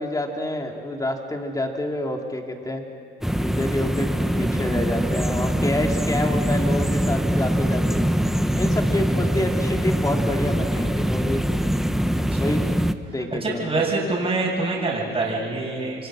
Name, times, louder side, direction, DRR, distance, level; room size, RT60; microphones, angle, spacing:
voice 1, 0.0-2.8 3.3-4.1 4.4-8.0 8.5-11.4 12.2-12.6 13.1-13.8, left 1 dB, 15° left, 2 dB, 3.2 m, -28 dB
sound 1, 3.2-12.9, equal, ahead, 0.9 m, -23 dB
voice 2, 12.0-12.5 13.4-16.1, right 3 dB, 30° right, -5 dB, 6.7 m, -26 dB
29.0 x 24.0 x 6.4 m, 2.3 s
cardioid pair, 90°, 20 cm